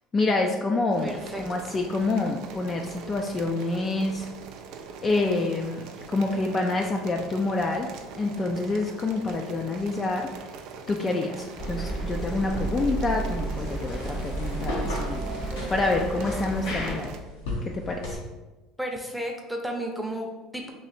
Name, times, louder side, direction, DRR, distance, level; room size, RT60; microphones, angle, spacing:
voice 1, 0.1-1.1 1.4-4.3 5.0-7.9 8.2-10.3 10.9-15.2 15.7-17.1 17.6-18.2, left 3 dB, 30° left, 1 dB, 0.4 m, -27 dB
sound 1, 0.9-17.2, right 5 dB, 65° right, 0.4 m, -42 dB
voice 2, 1.0-1.4 18.8-20.7, right 1 dB, ahead, 2 dB, 0.7 m, -33 dB
sound 2, 11.6-16.9, right 2 dB, 65° left, 1.3 m, -32 dB
sound 3, 12.5-18.2, left 2 dB, 85° left, 1.0 m, -38 dB
3.1 x 2.6 x 4.1 m, 1.1 s
supercardioid pair, 85°, 0 cm